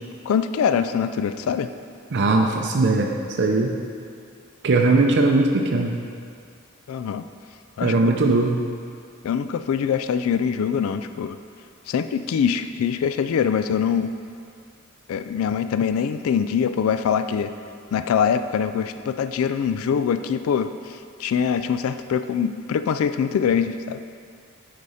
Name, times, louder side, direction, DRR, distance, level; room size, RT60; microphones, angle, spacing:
voice 1, 0.3-1.7 6.9-7.3 7.8-8.0 9.2-11.4 11.9-14.1 15.1-17.5 17.9-24.0, left 7 dB, 75° left, 11 dB, 0.3 m, -23 dB
voice 2, 2.1-3.1 3.4-3.7 4.6-5.9 7.8-8.6, right 3 dB, 55° right, 2 dB, 0.5 m, -19 dB
9.5 x 4.1 x 4.8 m, 2.3 s
head